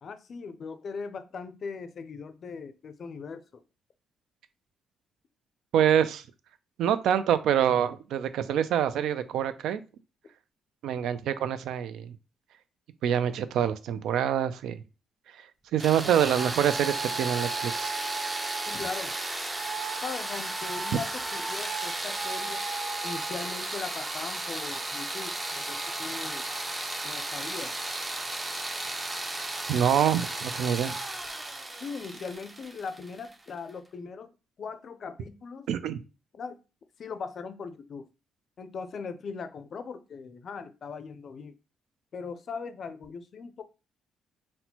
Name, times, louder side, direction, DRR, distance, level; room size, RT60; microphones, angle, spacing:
voice 1, 0.0-3.6 18.7-19.1 20.0-22.6 23.0-26.5 27.0-27.7 31.8-34.3 34.6-35.7 36.3-36.6 37.0-38.0 38.6-41.5 42.1-43.6, left 5 dB, 55° left, 0.4 m, -39 dB
voice 2, 5.7-6.2 6.8-9.8 10.8-12.1 13.0-14.8 15.7-17.9 29.7-31.0 35.7-36.0, right 9 dB, 80° right, 0.3 m, -26 dB
sound 1, 15.8-33.5, right 2 dB, 20° right, 0.5 m, -34 dB
4.2 x 2.1 x 2.8 m
cardioid pair, 90°, 0 cm